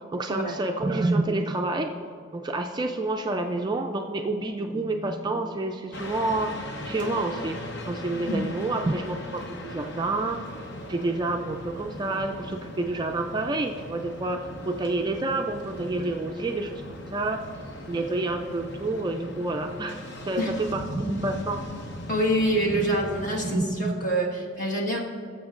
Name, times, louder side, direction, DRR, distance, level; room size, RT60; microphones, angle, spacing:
voice 1, 0.1-1.9 2.3-7.6 7.9-10.4 10.9-17.5 17.9-20.0 20.3-21.6 22.7-22.8 23.2-24.2, right 2 dB, 20° right, 4 dB, 0.3 m, -28 dB
sound 1, 5.9-23.6, left 1 dB, 60° left, 1.0 m, -39 dB
voice 2, 22.1-25.0, right 1 dB, 40° left, -2 dB, 1.5 m, -26 dB
19.5 x 7.2 x 2.5 m, 2.2 s
head